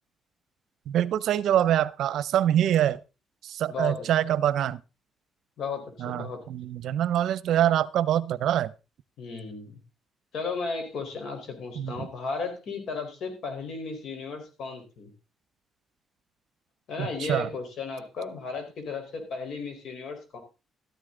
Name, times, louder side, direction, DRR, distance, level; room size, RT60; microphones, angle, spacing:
voice 1, 0.9-3.0 3.4-4.8 6.0-8.7 11.8-12.1 17.0-17.5, right 11 dB, 75° right, 18 dB, 0.7 m, -25 dB
voice 2, 3.7-4.4 5.6-6.4 9.2-9.8 10.3-15.1 16.9-20.4, left 4 dB, 70° left, 6 dB, 4.3 m, -35 dB
13.5 x 11.5 x 3.8 m, 0.30 s
cardioid pair, 90°, 0 cm